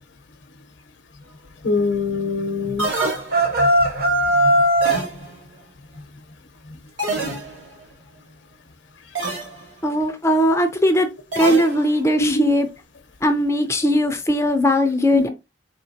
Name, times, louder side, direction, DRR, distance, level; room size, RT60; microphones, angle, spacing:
voice 1, 1.6-2.9 3.6-3.7 12.2-12.5 15.1-15.3, left 3 dB, 70° left, 0.7 m, -22 dB
sound 1, 2.8-3.8 4.8-5.6 7.0-7.9 9.2-9.7 11.3-12.2, right 2 dB, 80° right, 1.7 m, -28 dB
rooster call in barn, 2.9-5.1, right 1 dB, 55° right, 1.1 m, -18 dB
voice 2, 9.8-11.1 11.4-12.7 13.2-15.3, equal, 15° left, 0.4 m, -19 dB
4.3 x 3.1 x 2.6 m
head